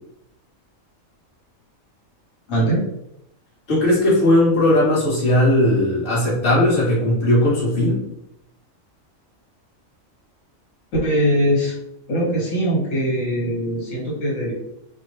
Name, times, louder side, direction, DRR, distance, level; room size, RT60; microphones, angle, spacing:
voice 1, 2.5-2.8 11.0-11.8 12.1-14.5, equal, 75° left, -5 dB, 1.8 m, -21 dB
voice 2, 3.7-8.0, left 1 dB, 40° left, -7 dB, 1.6 m, -17 dB
4.7 x 2.2 x 3.2 m, 0.80 s
omnidirectional pair, 1.4 m